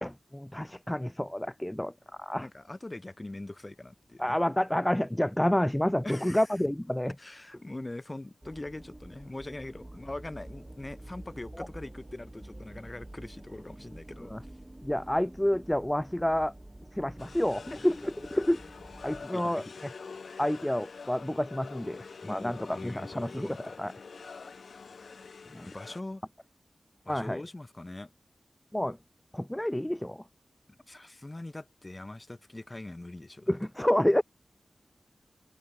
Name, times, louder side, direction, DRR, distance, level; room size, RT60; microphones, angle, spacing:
voice 1, 0.0-1.9 2.2-2.5 4.2-7.1 11.6-11.7 14.3-14.4 14.8-16.5 16.9-18.6 19.0-19.9 20.4-23.5 23.8-23.9 25.5-25.7 27.1-27.4 28.7-29.0 29.3-30.2 33.5-34.2, left 1 dB, 10° left, 0.8 m, -29 dB
voice 2, 2.4-4.4 6.0-6.5 7.2-14.5 17.7-17.8 19.3-19.7 22.2-23.8 25.6-26.2 27.0-28.1 30.9-33.5, left 2 dB, 25° left, 7.3 m, -42 dB
sound 1, 8.4-19.3, right 1 dB, 15° right, 1.8 m, -48 dB
sound 2, 17.2-26.0, left 5 dB, 75° left, 4.6 m, -46 dB
wide cardioid pair, 85°, 0 cm